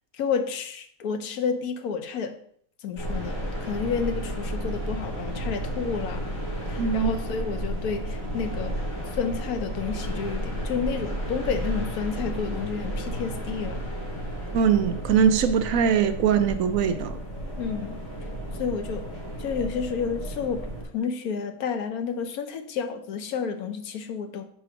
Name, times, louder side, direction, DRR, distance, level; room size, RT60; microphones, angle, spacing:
voice 1, 0.1-2.3 2.8-6.2 6.7-8.7 9.1-13.8 17.6-18.0 18.6-19.1 19.4-20.7 20.9-24.4, left 6 dB, 75° left, 1.2 m, -30 dB
sound 1, 3.0-20.8, equal, 30° left, 2.2 m, -32 dB
voice 2, 6.8-7.1 14.5-17.2, right 7 dB, 70° right, 0.9 m, -22 dB
5.1 x 4.8 x 5.8 m
omnidirectional pair, 1.6 m